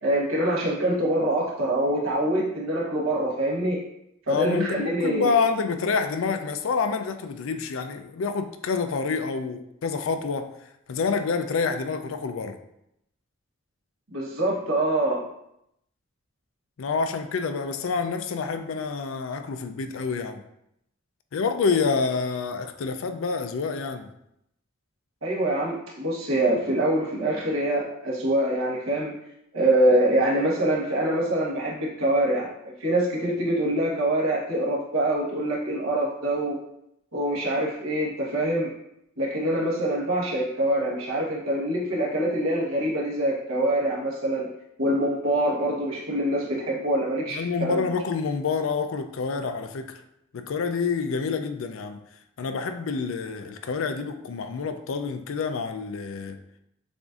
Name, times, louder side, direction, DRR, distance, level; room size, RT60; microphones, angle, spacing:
voice 1, 0.0-3.8 4.3-5.3 14.1-15.3 25.2-29.2 29.5-36.6 37.1-38.7 39.2-44.5 44.8-47.9, right 1 dB, 80° right, 1.2 m, -25 dB
voice 2, 4.3-10.6 10.9-12.6 16.8-20.4 21.3-24.1 47.3-50.0 50.3-52.0 52.4-56.4, left 5 dB, 70° left, 0.4 m, -27 dB
6.9 x 2.6 x 2.4 m
head